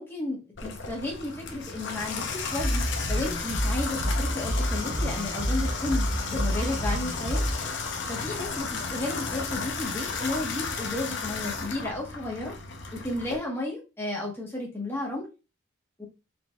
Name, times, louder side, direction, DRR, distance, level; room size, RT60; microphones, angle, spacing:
voice 1, 0.0-2.8 3.1-7.4 8.1-12.5 12.9-15.3 16.0-16.1, left 2 dB, 10° left, -2 dB, 1.2 m, -33 dB
Water tap faucet / Bathtub (filling or washing), 0.6-13.4, left 4 dB, 55° left, 0.7 m, -34 dB
sound 1, 2.6-7.5, equal, 60° right, 1.2 m, -28 dB
4.4 x 3.8 x 2.3 m, 0.29 s
head